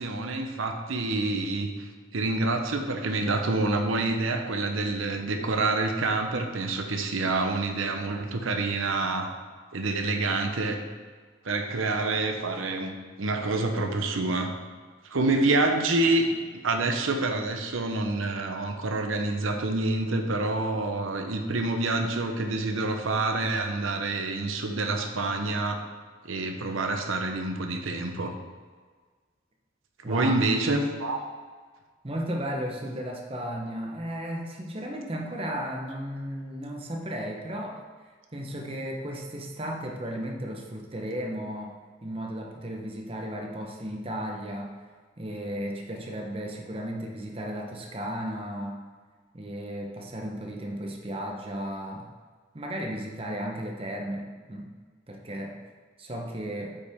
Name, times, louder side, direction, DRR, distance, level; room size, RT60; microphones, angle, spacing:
voice 1, 0.0-9.3 9.7-10.8 11.4-12.9 13.2-14.5 15.0-16.3 16.6-25.8 26.2-28.3 30.1-31.2, right 2 dB, 90° right, 5 dB, 0.8 m, -27 dB
voice 2, 30.0-30.4 32.0-37.8 38.3-41.7 42.0-44.8 45.2-48.8 49.3-52.1 52.5-54.7 55.1-55.6 56.0-56.8, equal, 30° right, 1 dB, 0.9 m, -34 dB
8.4 x 5.5 x 3.6 m, 1.5 s
head